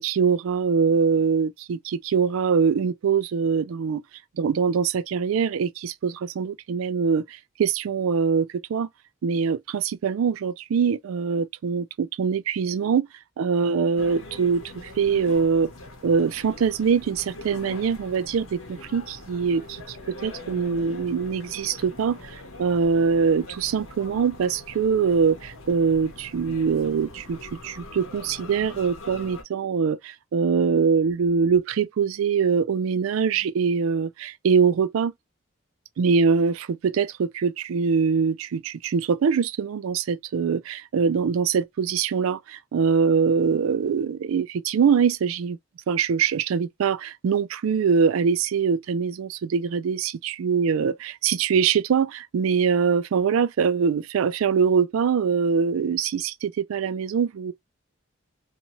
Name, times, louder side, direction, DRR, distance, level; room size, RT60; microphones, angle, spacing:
voice 1, 0.0-4.0 4.4-8.9 9.2-13.1 13.4-15.7 16.0-35.1 36.0-45.6 45.9-57.5, right 6 dB, 80° right, 0.3 m, -23 dB
sound 1, 14.0-29.4, left 2 dB, 80° left, 0.8 m, -42 dB
2.7 x 2.2 x 2.8 m
head